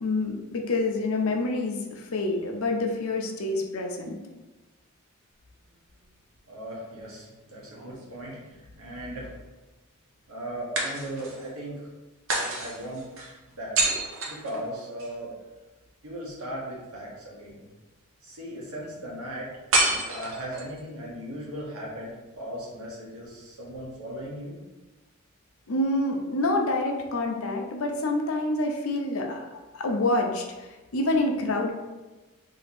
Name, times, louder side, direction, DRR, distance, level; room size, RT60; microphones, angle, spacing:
voice 1, 0.0-4.2 25.7-29.5 29.7-31.7, left 2 dB, 70° left, 2 dB, 0.6 m, -27 dB
voice 2, 6.5-9.3 10.3-11.9 12.5-13.0 13.6-13.8 14.3-15.3 16.0-17.6 18.2-19.6 20.1-24.6, right 1 dB, 80° right, -4 dB, 1.3 m, -37 dB
sound 1, 7.6-8.7 10.7-11.5 12.3-15.1 19.7-20.8, right 2 dB, 60° right, 0.8 m, -29 dB
3.3 x 2.8 x 4.2 m, 1.1 s
head